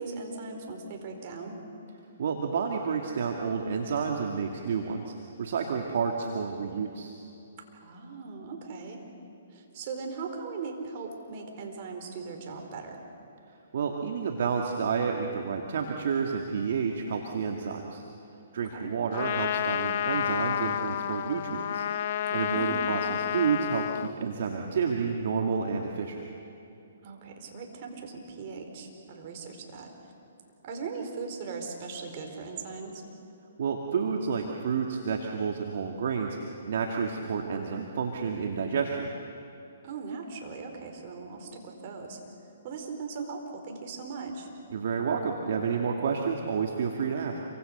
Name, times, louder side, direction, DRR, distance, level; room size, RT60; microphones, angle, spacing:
voice 1, 0.0-1.6 7.8-9.0 9.5-13.0 18.7-18.9 22.3-22.9 27.0-29.9 30.6-33.0 39.8-42.2 42.6-44.5, right 4 dB, 45° right, 3 dB, 4.7 m, -39 dB
voice 2, 2.2-7.2 13.7-18.0 18.5-21.9 22.3-26.2 33.6-39.1 44.7-47.4, right 6 dB, 60° right, 1 dB, 2.2 m, -30 dB
Trumpet, 19.1-24.1, left 10 dB, 50° left, 0.6 m, -30 dB
28.0 x 25.0 x 6.7 m, 2.8 s
hypercardioid pair, 130°, 0 cm